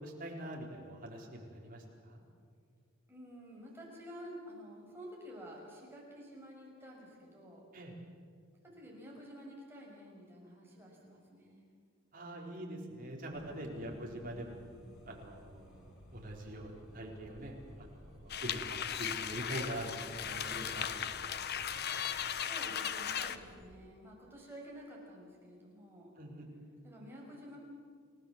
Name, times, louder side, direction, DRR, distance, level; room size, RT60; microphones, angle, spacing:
voice 1, 0.0-2.2 7.7-7.9 12.1-14.6 15.1-21.1 21.3-21.4 26.2-26.4, right 1 dB, 40° right, -1 dB, 4.3 m, -44 dB
voice 2, 3.1-7.7 8.6-11.7 13.6-14.1 22.3-26.1 26.8-27.6, equal, 10° right, -3 dB, 6.1 m, -51 dB
sound 1, 13.3-23.7, equal, 80° left, 4.3 m, -56 dB
sound 2, 18.3-23.4, left 8 dB, 50° left, 0.9 m, -37 dB
30.0 x 17.5 x 7.5 m, 2.1 s
head